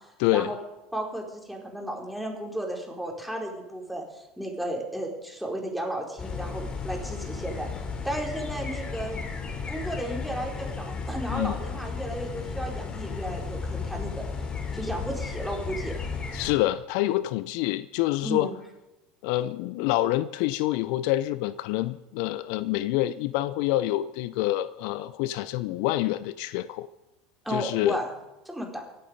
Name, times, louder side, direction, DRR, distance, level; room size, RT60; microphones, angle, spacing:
voice 1, 0.2-0.5 11.3-11.6 16.3-18.5 19.2-26.9 27.5-28.0, left 16 dB, 65° left, 16 dB, 0.5 m, -27 dB
voice 2, 0.9-7.7 8.0-9.2 9.7-14.3 14.7-16.0 18.2-18.6 27.4-28.1 28.4-28.8, right 1 dB, ahead, 0 dB, 4.4 m, -34 dB
sound 1, 6.2-16.5, left 5 dB, 25° left, 4.1 m, -34 dB
24.0 x 8.8 x 5.3 m, 1.0 s
hypercardioid pair, 80°, 4 cm